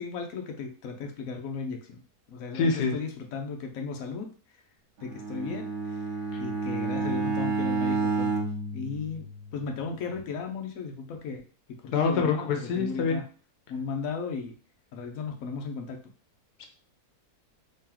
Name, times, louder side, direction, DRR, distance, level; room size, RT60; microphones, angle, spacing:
voice 1, 0.0-2.0 2.3-4.3 5.0-6.0 6.4-8.4 8.7-13.2 13.7-14.5 14.9-16.0, left 5 dB, 65° left, 3 dB, 1.1 m, -35 dB
voice 2, 2.5-2.9 6.3-6.4 11.9-13.2 16.6-16.7, left 5 dB, 90° left, 4 dB, 1.3 m, -26 dB
Bowed string instrument, 5.0-9.6, right 4 dB, 55° right, 1.0 m, -30 dB
3.3 x 2.9 x 3.8 m, 0.39 s
omnidirectional pair, 1.6 m